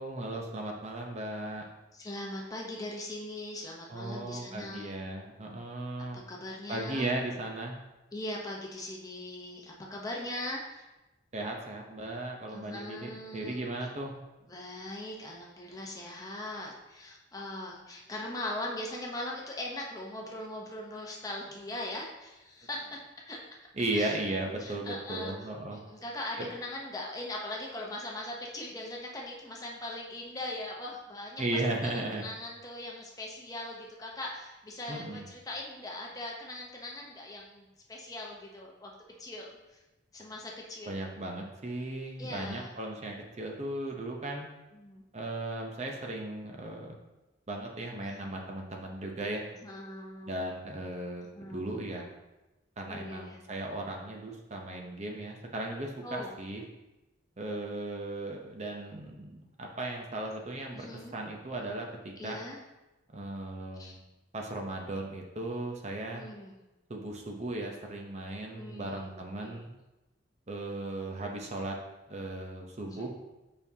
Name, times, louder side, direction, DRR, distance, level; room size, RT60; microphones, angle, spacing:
voice 1, 0.0-1.7 3.9-6.2 6.7-7.8 11.3-14.1 23.8-25.8 26.4-26.5 31.4-32.3 34.9-35.2 40.9-44.5 45.1-47.0 47.5-49.4 50.3-52.1 52.8-56.6 57.4-60.9 61.1-62.4 63.1-64.0 64.3-66.2 66.9-69.7 70.5-71.8 72.1-73.1, right 2 dB, 35° right, 1 dB, 0.7 m, -36 dB
voice 2, 1.9-5.0 6.1-7.1 8.1-10.8 12.5-13.6 14.5-22.8 23.3-23.4 23.9-24.2 24.6-38.9 39.2-39.8 40.1-41.0 42.2-42.8 44.7-45.0 47.9-48.2 49.6-50.4 51.3-51.8 52.9-53.4 56.0-56.3 60.7-61.2 62.2-62.6 63.8-63.9 66.1-66.6 68.5-69.7 72.8-73.1, left 1 dB, 20° left, -2 dB, 0.8 m, -40 dB
6.9 x 5.3 x 2.8 m, 1.0 s
head